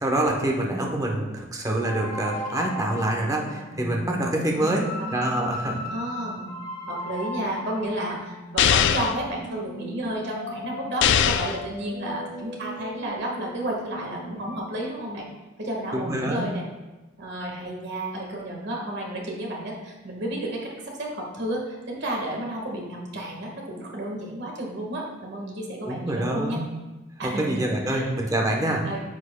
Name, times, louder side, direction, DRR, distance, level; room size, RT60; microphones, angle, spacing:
voice 1, 0.0-4.8 5.1-5.8 15.9-16.5 25.8-26.7 27.2-28.8, right 1 dB, 15° right, 0 dB, 0.9 m, -26 dB
sound 1, 1.8-14.6, equal, 40° left, 1.3 m, -36 dB
voice 2, 4.5-5.1 5.9-6.5 6.9-15.3 15.6-16.7 17.2-26.6 27.2-28.1 28.8-29.0, right 1 dB, 60° right, -1 dB, 1.5 m, -32 dB
sound 2, 8.6-9.2 11.0-11.6, left 9 dB, 60° left, 0.3 m, -20 dB
9.7 x 6.0 x 2.2 m, 1.1 s
head